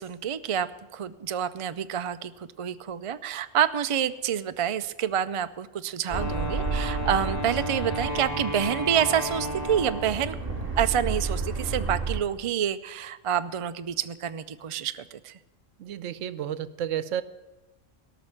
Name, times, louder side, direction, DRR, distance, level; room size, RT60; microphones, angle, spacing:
voice 1, 0.0-15.4, right 9 dB, 55° right, 11 dB, 0.3 m, -28 dB
Wind instrument woodwind instrument, 6.1-10.4, equal, 35° left, 1.6 m, -33 dB
sound 1, 6.1-12.2, right 3 dB, 30° right, 2.6 m, -32 dB
voice 2, 15.8-17.2, right 10 dB, 85° right, 15 dB, 1.1 m, -31 dB
17.5 x 6.1 x 9.7 m, 1.1 s
omnidirectional pair, 1.3 m